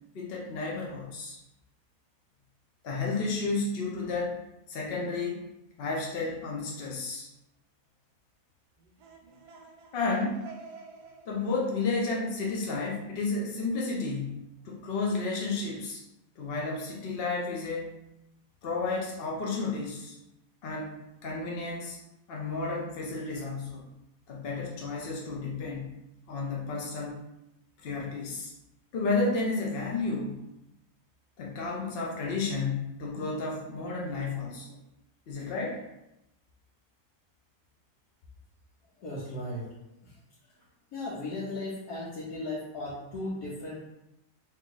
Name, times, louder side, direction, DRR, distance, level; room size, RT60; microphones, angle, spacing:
voice 1, 0.1-1.4 2.8-4.4 4.7-5.5 5.8-7.3 9.9-10.4 11.3-16.0 16.4-17.9 18.6-20.2 20.6-22.0 22.3-23.9 24.3-25.9 26.3-27.2 27.8-28.5 28.9-30.4 31.4-34.8 35.3-35.8, left 3 dB, 60° left, -3 dB, 0.6 m, -32 dB
sound 1, 8.8-13.5, right 5 dB, 90° right, 1.2 m, -49 dB
voice 2, 38.8-40.7 40.9-43.8, left 2 dB, 80° left, -8 dB, 1.4 m, -37 dB
2.9 x 2.8 x 3.7 m, 0.88 s
omnidirectional pair, 1.7 m